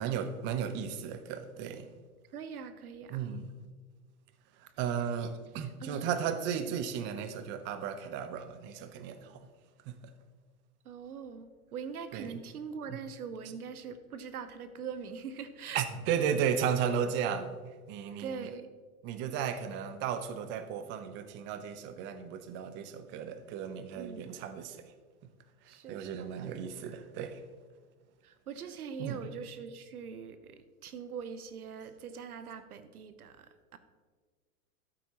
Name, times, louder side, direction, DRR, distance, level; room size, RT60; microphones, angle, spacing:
voice 1, 0.0-1.9 3.1-3.5 4.6-9.5 9.9-10.1 12.1-12.4 12.9-13.0 13.4-13.5 15.7-17.6 17.9-18.5 19.0-24.9 25.9-27.4 29.0-29.2, right 8 dB, 25° right, 0.6 m, -35 dB
voice 2, 2.3-3.2 5.6-6.1 10.8-15.8 18.2-18.7 23.9-24.4 25.6-26.1 28.2-33.8, right 6 dB, 85° right, 0.8 m, -42 dB
13.0 x 7.3 x 2.9 m
hypercardioid pair, 120°, 43 cm